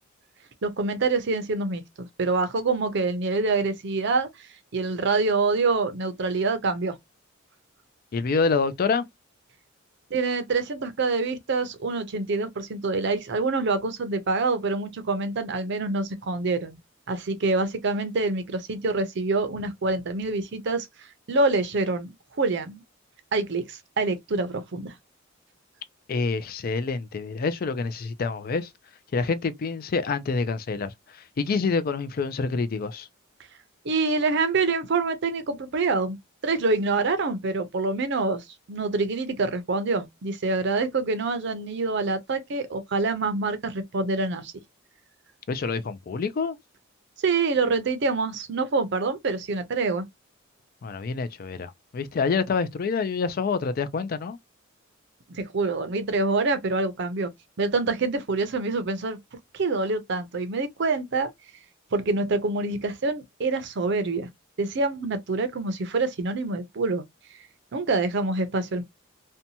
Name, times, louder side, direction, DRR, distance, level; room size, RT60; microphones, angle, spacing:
voice 1, 0.6-4.5 4.7-7.0 10.1-16.8 17.1-20.9 21.3-22.8 23.3-24.9 33.8-36.2 36.4-44.5 47.2-50.1 55.3-57.3 57.6-59.2 59.5-61.3 61.9-64.3 64.6-67.0 67.7-68.8, right 3 dB, 60° right, 0.5 m, -26 dB
voice 2, 8.1-9.1 26.1-28.7 29.1-33.1 45.5-46.6 50.8-54.4, left 4 dB, 45° left, 0.4 m, -27 dB
2.7 x 2.2 x 2.7 m
head